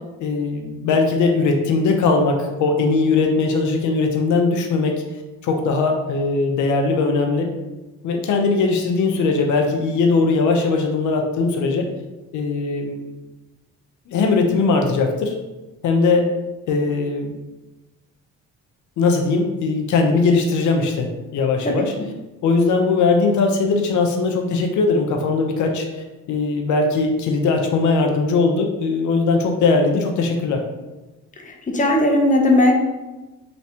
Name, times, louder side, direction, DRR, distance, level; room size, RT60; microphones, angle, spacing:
voice 1, 0.2-5.0 5.4-7.5 8.0-11.9 12.3-13.1 14.1-15.3 15.8-16.3 16.7-17.3 19.0-21.9 22.4-30.6, left 3 dB, 75° left, 3 dB, 0.6 m, -20 dB
voice 2, 21.6-22.1 31.5-32.8, left 1 dB, 25° left, 1 dB, 0.7 m, -18 dB
3.3 x 3.1 x 2.8 m, 1.1 s
cardioid pair, 90°, 30 cm